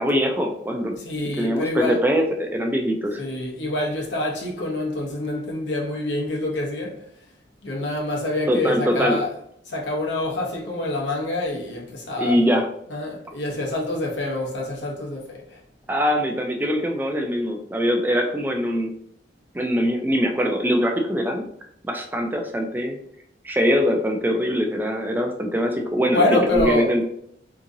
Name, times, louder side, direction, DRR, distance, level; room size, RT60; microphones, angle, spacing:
voice 1, 0.0-0.9 1.4-3.2 8.5-9.2 12.2-12.7 15.9-18.9 19.5-21.4 21.8-23.0 23.4-27.1, equal, 10° right, 0.3 m, -22 dB
voice 2, 0.9-2.0 3.2-6.9 7.6-9.3 9.7-12.4 12.9-15.6 26.1-26.9, left 2 dB, 85° left, 0.9 m, -26 dB
3.6 x 2.9 x 2.5 m
head